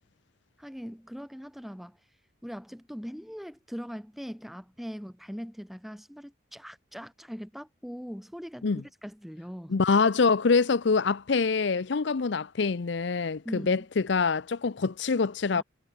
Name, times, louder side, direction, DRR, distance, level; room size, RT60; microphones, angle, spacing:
voice 1, 0.6-2.0 2.4-9.8 13.4-13.8 15.5-15.6, equal, ahead, 6.3 m, -41 dB
voice 2, 9.7-15.6, left 4 dB, 60° left, 0.6 m, -25 dB
head